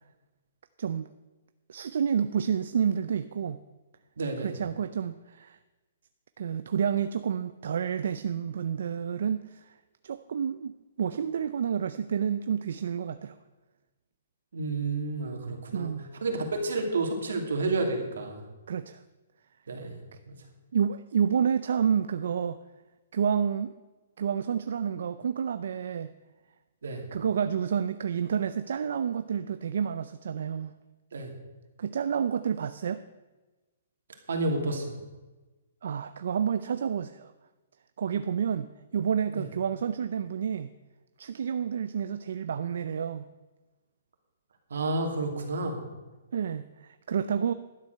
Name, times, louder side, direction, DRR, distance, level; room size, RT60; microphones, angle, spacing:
voice 1, 1.7-3.6 4.4-5.6 6.4-9.7 10.0-13.3 15.7-16.0 18.7-19.0 20.7-22.6 23.1-23.8 24.2-26.1 27.1-30.7 31.8-33.0 35.8-37.3 38.0-40.7 41.2-43.3 46.3-47.5, right 7 dB, 70° right, 11 dB, 0.5 m, -29 dB
voice 2, 4.2-4.5 14.5-15.9 16.2-18.4 19.7-20.4 26.8-27.0 31.1-31.3 34.3-35.0 39.3-39.5 44.7-45.8, right 2 dB, 85° right, 3 dB, 2.7 m, -30 dB
12.0 x 7.6 x 6.6 m, 1.2 s
hypercardioid pair, 160°, 0 cm